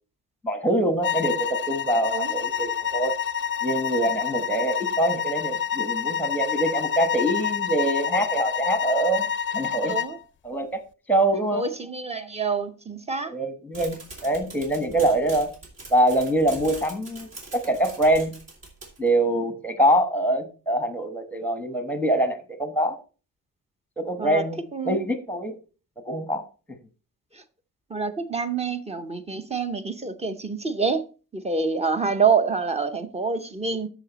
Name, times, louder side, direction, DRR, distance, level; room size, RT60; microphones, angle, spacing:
voice 1, 0.4-3.1 3.6-9.3 9.5-9.9 10.4-10.8 11.1-11.6 13.3-15.5 15.9-18.3 19.0-23.0 24.0-24.6 24.8-25.6 26.1-26.4, right 1 dB, 5° left, 1.1 m, -24 dB
sound 1, 1.0-10.2, left 8 dB, 35° left, 0.4 m, -28 dB
voice 2, 9.9-10.2 11.5-13.3 24.2-24.4 24.7-25.0 27.3-27.4 27.9-31.0 31.3-33.9, right 5 dB, 20° right, 0.7 m, -26 dB
sound 2, 13.7-19.1, right 2 dB, 50° right, 3.2 m, -42 dB
13.0 x 5.0 x 4.0 m
wide cardioid pair, 155°, 34 cm